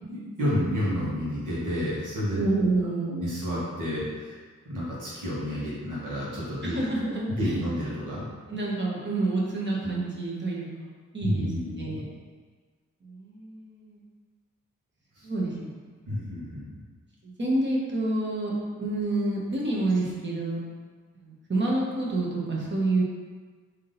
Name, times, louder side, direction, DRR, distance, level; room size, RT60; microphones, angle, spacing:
voice 1, 0.0-2.4 3.1-4.4 4.6-6.8 7.4-8.2 11.2-12.0 15.1-15.3 16.1-16.8, equal, 75° right, -8 dB, 1.4 m, -30 dB
voice 2, 2.4-3.2 6.6-7.6 8.5-12.1 13.0-14.0 15.2-16.0 17.2-18.5 18.8-20.6 21.1-23.0, right 2 dB, 35° right, -4 dB, 1.0 m, -28 dB
3.6 x 2.8 x 3.8 m, 1.5 s
wide cardioid pair, 80°, 31 cm